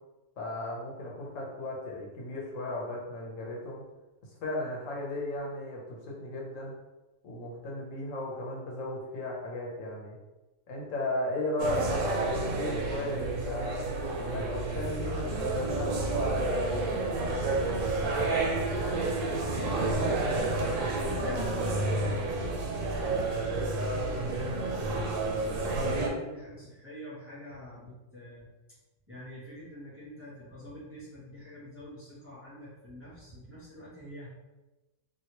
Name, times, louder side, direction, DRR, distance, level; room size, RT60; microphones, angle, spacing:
voice 1, 0.4-3.8 4.4-6.7 7.2-10.2 10.7-13.8 14.2-17.1, left 1 dB, 85° left, -3 dB, 1.2 m, -36 dB
sound 1, 11.6-26.1, right 2 dB, 80° right, 0.9 m, -30 dB
voice 2, 18.7-20.4 21.0-25.2 25.8-28.5 29.1-34.3, equal, 15° right, -9 dB, 0.8 m, -45 dB
2.9 x 2.7 x 2.9 m, 1.1 s
omnidirectional pair, 1.3 m